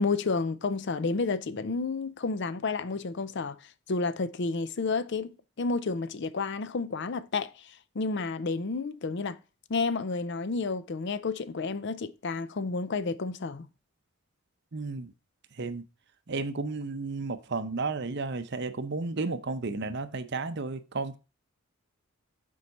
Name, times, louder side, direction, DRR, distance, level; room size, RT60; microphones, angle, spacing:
voice 1, 0.0-3.6 3.9-9.4 9.7-13.7, left 4 dB, 50° left, 0.5 m, -31 dB
voice 2, 14.7-15.1 15.6-15.8 16.3-21.2, right 3 dB, 50° right, 0.7 m, -33 dB
7.3 x 4.7 x 5.3 m
head